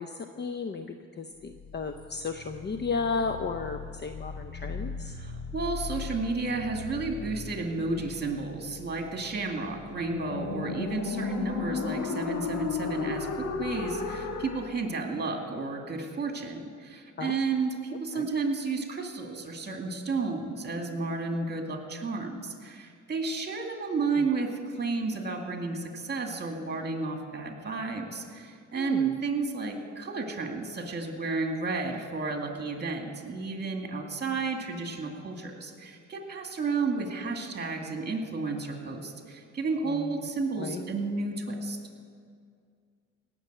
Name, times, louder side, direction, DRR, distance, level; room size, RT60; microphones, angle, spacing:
voice 1, 0.0-5.1 17.2-17.4 18.1-18.3 28.7-29.2 39.9-40.1 40.6-40.8, left 4 dB, 35° left, 7 dB, 0.7 m, -34 dB
sound 1, 1.5-14.7, left 5 dB, 75° left, 1.5 m, -36 dB
voice 2, 5.1-41.8, right 4 dB, 35° right, 3 dB, 2.3 m, -32 dB
17.5 x 6.9 x 7.9 m, 2.2 s
cardioid pair, 90°, 30 cm